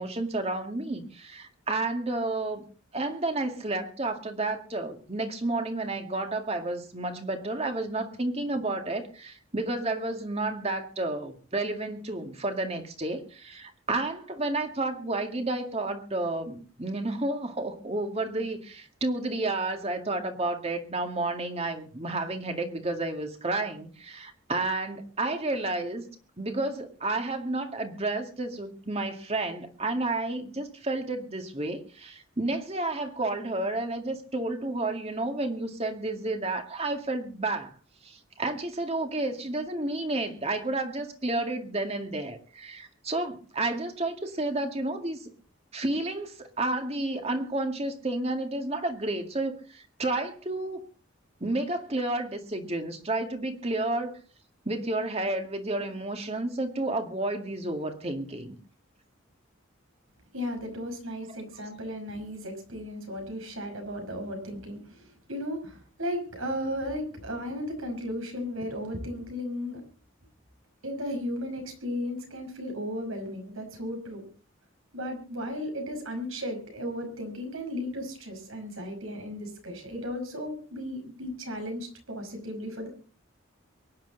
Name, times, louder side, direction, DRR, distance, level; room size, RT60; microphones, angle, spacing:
voice 1, 0.0-2.6 2.9-26.1 26.4-37.7 38.0-45.3 45.7-50.8 51.4-54.2 54.7-58.6, right 2 dB, 30° right, 6 dB, 2.1 m, -31 dB
voice 2, 60.3-69.8 70.8-74.3 74.9-82.9, equal, 80° right, 4 dB, 5.5 m, -35 dB
23.5 x 10.5 x 4.0 m, 0.37 s
head